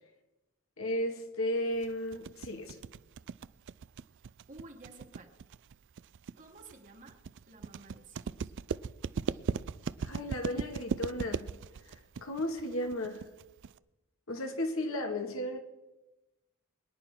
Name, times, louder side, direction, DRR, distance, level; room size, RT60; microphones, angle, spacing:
voice 1, 0.8-2.8 10.0-11.5 11.9-13.3 14.3-15.6, left 1 dB, 70° left, 1.9 m, -34 dB
sound 1, 1.8-13.8, right 5 dB, 60° right, 0.4 m, -38 dB
voice 2, 4.5-5.3 6.4-7.2 7.5-8.5, right 2 dB, 35° right, 1.4 m, -52 dB
23.0 x 10.5 x 3.7 m
head